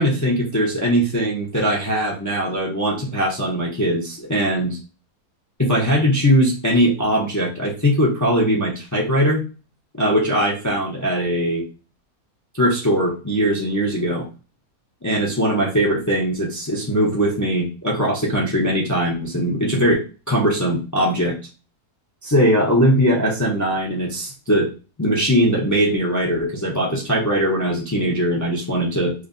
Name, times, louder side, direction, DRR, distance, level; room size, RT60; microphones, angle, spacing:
voice 1, 0.0-4.8 5.6-9.4 10.0-11.6 12.5-14.3 15.0-21.4 22.2-24.7 25.0-29.1, equal, 30° left, -3 dB, 0.3 m, -20 dB
5.1 x 2.1 x 2.6 m, 0.33 s
omnidirectional pair, 1.7 m